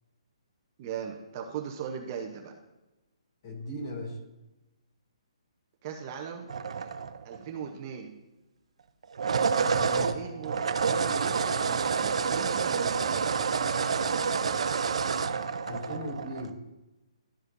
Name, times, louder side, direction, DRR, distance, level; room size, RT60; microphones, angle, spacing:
voice 1, 0.8-2.6 5.8-6.9 7.2-8.2 10.1-13.3, right 7 dB, 30° right, 2 dB, 0.8 m, -39 dB
voice 2, 3.4-4.2 9.7-10.1 15.7-16.6, left 1 dB, 45° left, -1 dB, 2.5 m, -37 dB
sound 1, 6.5-7.5 9.0-16.5, right 5 dB, 70° right, 0.6 m, -28 dB
12.5 x 4.9 x 2.6 m, 1.0 s
hypercardioid pair, 160°, 3 cm